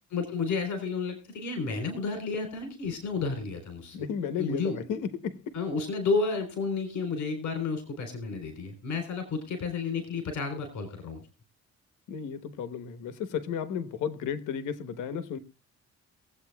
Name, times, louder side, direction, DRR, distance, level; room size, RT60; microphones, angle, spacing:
voice 1, 0.1-4.0 4.4-4.8 5.5-11.2, left 4 dB, 70° left, 3.8 m, -31 dB
voice 2, 3.9-5.6 12.1-15.4, left 7 dB, 85° left, 1.2 m, -33 dB
23.0 x 8.5 x 2.3 m
cardioid pair, 90°, 30 cm